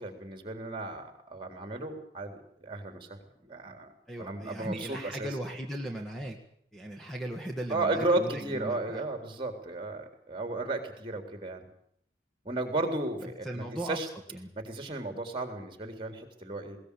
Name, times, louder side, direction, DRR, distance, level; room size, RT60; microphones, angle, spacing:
voice 1, 0.0-3.9 4.2-5.3 7.7-11.7 12.4-14.1 14.6-16.8, right 2 dB, 30° right, 6 dB, 3.8 m, -34 dB
voice 2, 4.1-6.4 6.7-9.1 13.2-14.0 14.3-14.5, right 1 dB, ahead, 1 dB, 1.9 m, -38 dB
20.5 x 18.5 x 8.5 m, 0.68 s
head